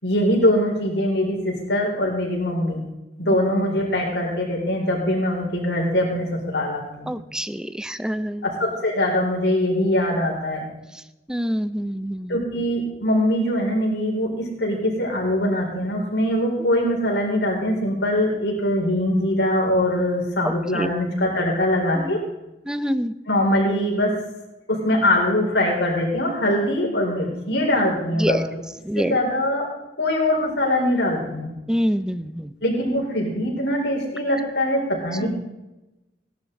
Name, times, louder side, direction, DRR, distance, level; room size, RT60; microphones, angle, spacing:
voice 1, 0.0-2.8 3.2-7.1 8.4-10.7 12.3-22.2 23.3-24.1 24.7-28.6 28.9-29.7 30.0-31.5 32.6-35.3, left 1 dB, 75° left, -2 dB, 4.4 m, -22 dB
voice 2, 7.1-8.5 11.3-12.4 20.4-20.9 22.0-22.1 22.7-23.1 28.2-28.5 28.8-29.2 31.7-32.5 35.2-35.3, equal, 5° right, 13 dB, 0.5 m, -26 dB
16.5 x 11.5 x 4.0 m, 1.0 s
head